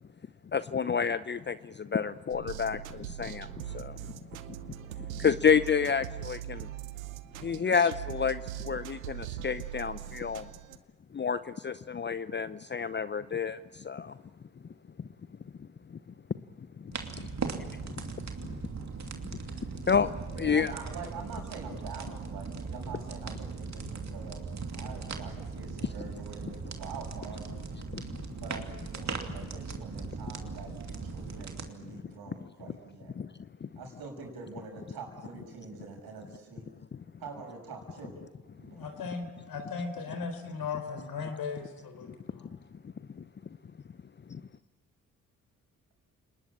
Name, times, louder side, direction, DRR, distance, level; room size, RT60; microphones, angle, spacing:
voice 1, 0.5-4.0 4.6-4.7 5.1-6.7 7.4-10.5 11.1-14.1 15.0-15.1 15.9-16.0 16.8-17.3 19.8-20.7 27.9-28.1 33.2-33.3 33.6-33.7 36.9-37.0 42.0-42.1 43.2-43.3 44.3-44.4, left 6 dB, 25° left, 15 dB, 0.7 m, -30 dB
sound 1, 2.3-10.8, right 12 dB, 90° right, 0.7 m, -41 dB
sound 2, 16.9-31.7, right 5 dB, 45° right, 2.8 m, -39 dB
voice 2, 20.3-27.5 28.3-33.1 33.8-36.7 37.2-38.2 38.6-38.9, right 4 dB, 65° right, 2 dB, 6.9 m, -45 dB
voice 3, 38.8-42.5, left 5 dB, 60° left, 7 dB, 4.2 m, -37 dB
29.5 x 20.0 x 8.8 m, 1.3 s
hypercardioid pair, 40°, 39 cm